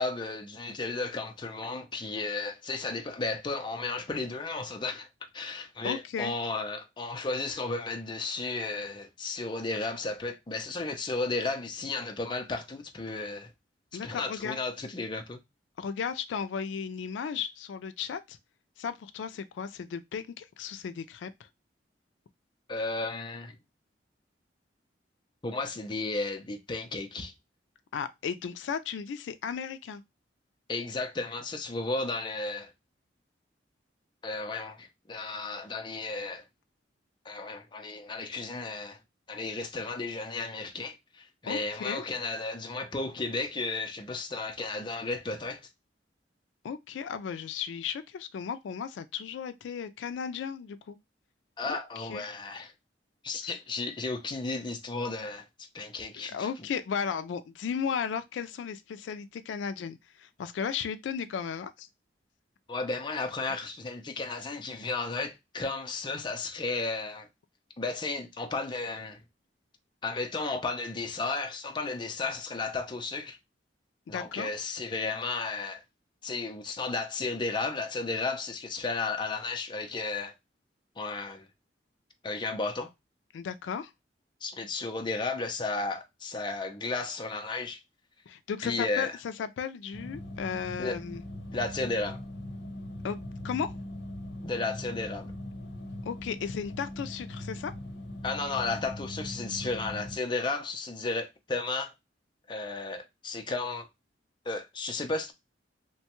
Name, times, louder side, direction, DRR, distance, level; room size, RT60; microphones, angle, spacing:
voice 1, 0.0-13.5 13.9-15.4 22.7-23.6 25.4-27.3 30.7-32.7 34.2-36.4 37.2-39.0 39.3-45.6 51.6-52.7 53.2-55.5 55.7-56.7 62.7-67.3 67.8-69.2 70.0-73.4 74.1-75.8 76.2-80.3 81.0-81.5 82.2-82.9 84.4-87.8 88.6-89.2 90.8-91.0 91.5-92.2 94.4-95.3 98.2-101.9 102.5-103.9 104.5-105.3, left 3 dB, 25° left, 0.5 m, -34 dB
voice 2, 5.8-6.3 13.9-14.6 15.8-18.4 18.8-21.5 27.9-30.0 41.5-42.0 46.6-51.0 51.7-52.3 53.4-53.6 56.3-61.9 63.5-63.6 74.1-74.5 83.3-83.9 88.3-91.2 93.0-93.2 93.4-93.7 96.1-97.7, left 7 dB, 80° left, 0.3 m, -35 dB
sound 1, 89.9-100.2, left 1 dB, 65° left, 0.8 m, -40 dB
3.0 x 2.2 x 2.9 m
head